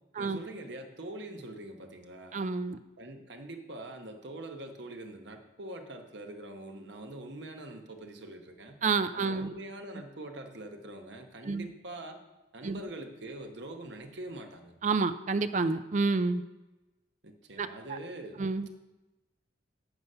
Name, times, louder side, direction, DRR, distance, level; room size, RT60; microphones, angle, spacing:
voice 1, 0.2-2.4 3.0-8.8 9.1-12.2 12.5-14.7 17.2-18.5, right 1 dB, 65° right, 5 dB, 1.0 m, -44 dB
voice 2, 2.3-2.8 8.8-9.5 11.4-11.7 12.6-12.8 14.8-16.4 17.6-18.0 18.4-18.7, right 4 dB, 40° right, 11 dB, 0.4 m, -29 dB
8.0 x 6.9 x 5.5 m, 1.1 s
head